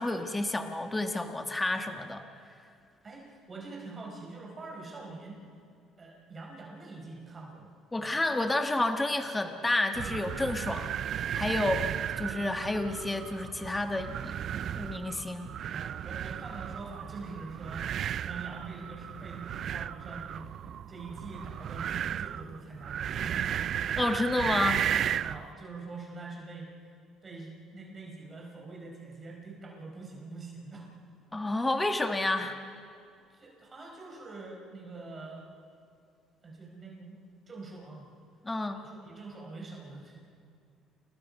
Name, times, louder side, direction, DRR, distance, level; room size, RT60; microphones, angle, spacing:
voice 1, 0.0-2.2 7.9-14.2 14.7-15.5 24.0-24.9 31.3-32.6 38.4-38.8, left 2 dB, 15° left, 6 dB, 1.4 m, -30 dB
voice 2, 3.0-5.4 6.0-7.7 15.7-23.3 25.2-26.9 27.2-30.9 33.3-35.4 36.4-37.2 37.5-38.1 38.7-40.2, right 3 dB, 30° right, -1 dB, 4.7 m, -44 dB
sound 1, 9.9-25.4, right 9 dB, 55° right, 0.4 m, -34 dB
29.5 x 21.0 x 5.4 m, 2.4 s
cardioid pair, 110°, 0 cm